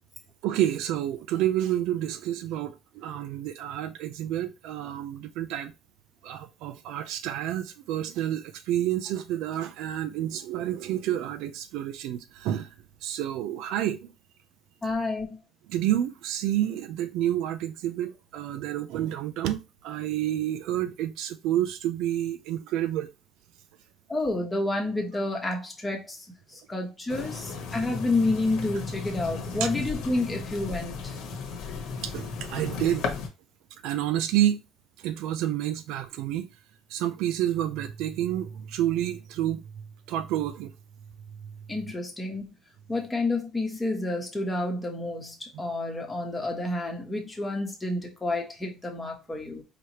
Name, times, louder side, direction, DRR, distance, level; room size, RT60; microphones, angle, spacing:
voice 1, 0.4-5.7 6.2-12.7 13.0-14.1 15.7-23.1 29.6-29.7 32.0-33.1 33.8-34.6 35.0-36.5 36.9-39.6 40.1-40.7, right 12 dB, 70° right, 0.5 m, -29 dB
voice 2, 14.8-15.4 24.1-26.2 26.5-31.2 41.7-42.5 42.9-49.6, left 2 dB, 10° left, 1.1 m, -29 dB
sound 1, 27.1-33.3, left 4 dB, 60° left, 1.2 m, -35 dB
4.8 x 3.0 x 2.9 m
cardioid pair, 175°, 0 cm